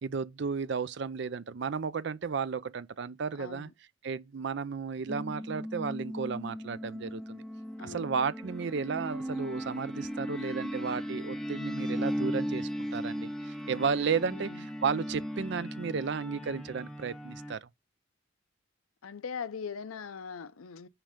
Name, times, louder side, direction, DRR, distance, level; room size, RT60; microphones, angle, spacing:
voice 1, 0.0-3.7 4.0-7.4 7.8-17.7, right 5 dB, 55° right, 0.4 m, -33 dB
voice 2, 3.4-3.7 7.8-8.1 14.2-14.7 19.0-20.9, left 6 dB, 90° left, 0.6 m, -41 dB
sound 1, 5.1-17.5, equal, 5° left, 0.5 m, -37 dB
8.9 x 3.2 x 5.0 m
head